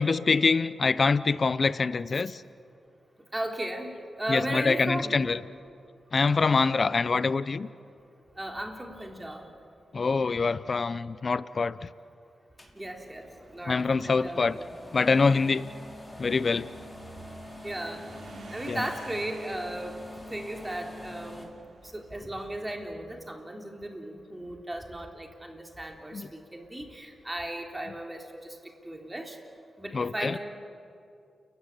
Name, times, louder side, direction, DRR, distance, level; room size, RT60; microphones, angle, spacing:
voice 1, 0.0-2.4 4.3-5.4 6.1-7.7 9.9-11.8 13.7-14.6 14.9-15.7 16.2-16.7 18.7-18.8 26.1-26.3 29.9-30.4, left 4 dB, 50° left, 16 dB, 0.7 m, -25 dB
voice 2, 3.3-5.3 8.4-9.4 12.7-14.6 17.6-18.1 18.5-20.0 20.3-21.5 21.9-28.6 28.8-29.4 29.8-30.4, right 1 dB, 15° right, 2 dB, 3.6 m, -36 dB
sound 1, 12.6-21.4, left 1 dB, 20° left, 5.6 m, -46 dB
sound 2, 12.9-22.9, right 3 dB, 75° right, 3.6 m, -51 dB
29.5 x 15.5 x 9.9 m, 2.4 s
cardioid pair, 55°, 0 cm